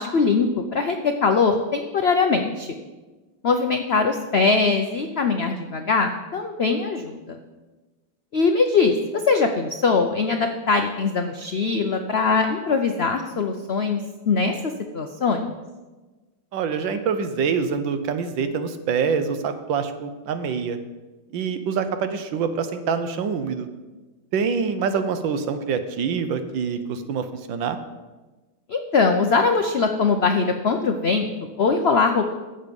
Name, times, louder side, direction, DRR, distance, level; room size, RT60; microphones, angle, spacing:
voice 1, 0.0-2.7 3.4-7.4 8.3-15.5 28.7-32.3, left 4 dB, 75° left, 5 dB, 0.5 m, -22 dB
voice 2, 16.5-20.8 21.3-23.7 24.3-27.8, right 6 dB, 80° right, 9 dB, 1.6 m, -25 dB
13.0 x 7.7 x 5.3 m, 1.2 s
omnidirectional pair, 2.1 m